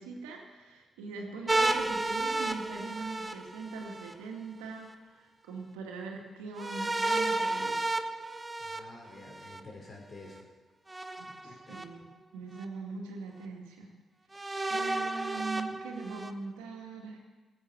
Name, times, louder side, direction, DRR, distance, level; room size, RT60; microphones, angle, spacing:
voice 1, 0.0-8.0 11.2-13.9 14.7-17.2, right 4 dB, 85° right, 1 dB, 2.1 m, -41 dB
sound 1, 1.5-4.1 6.6-9.6 10.9-11.8 12.6-12.7 14.3-16.3, right 2 dB, 25° right, 1.1 m, -32 dB
voice 2, 8.6-10.4 11.3-11.8, left 2 dB, 45° left, 0 dB, 5.3 m, -50 dB
16.5 x 8.7 x 7.2 m, 1.3 s
hypercardioid pair, 45°, 0 cm